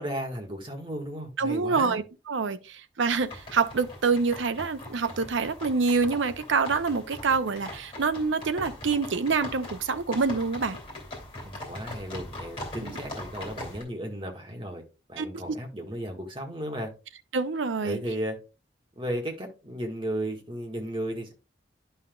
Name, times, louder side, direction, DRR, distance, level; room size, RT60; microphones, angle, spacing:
voice 1, 0.0-2.0 11.4-14.8 15.1-16.9 17.8-18.4 18.9-21.3, equal, 25° right, 1.5 m, -34 dB
voice 2, 1.4-10.8 12.8-12.9 15.2-15.3 17.3-18.0, right 4 dB, 80° right, 0.6 m, -26 dB
sound 1, 3.1-13.8, left 1 dB, 30° left, 2.8 m, -41 dB
11.0 x 5.6 x 2.3 m
head